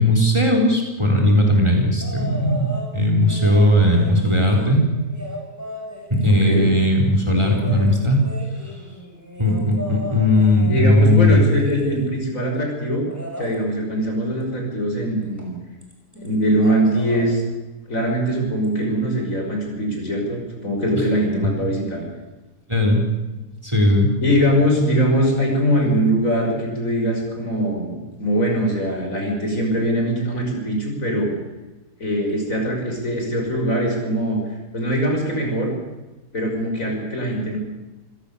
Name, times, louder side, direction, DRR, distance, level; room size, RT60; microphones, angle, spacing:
voice 1, 0.0-4.8 6.1-8.2 9.4-11.4 21.0-21.1 22.7-23.0 23.6-24.1, left 1 dB, 15° right, 1 dB, 4.1 m, -17 dB
sound 1, 2.0-2.9 3.3-6.8 7.3-12.2 13.0-13.5 15.4-15.5 15.8-16.3 16.5-17.2 18.6-18.7, equal, 10° left, 5.4 m, -36 dB
voice 2, 10.7-13.1 13.4-15.5 16.1-17.4 17.9-22.0 24.2-31.3 32.0-34.4 34.7-35.7 36.3-37.6, equal, 50° left, 1 dB, 5.8 m, -22 dB
27.5 x 16.5 x 7.0 m, 1.1 s
omnidirectional pair, 1.8 m